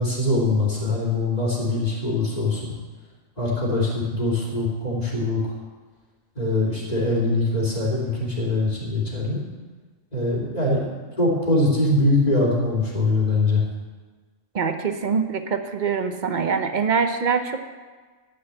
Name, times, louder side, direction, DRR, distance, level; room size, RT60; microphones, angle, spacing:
voice 1, 0.0-2.7 3.4-5.4 6.3-9.4 10.1-10.9 11.2-13.6, left 2 dB, 30° left, -5 dB, 3.2 m, -22 dB
voice 2, 14.5-17.7, right 5 dB, 45° right, 8 dB, 0.7 m, -24 dB
11.5 x 6.7 x 8.1 m, 1.4 s
omnidirectional pair, 1.3 m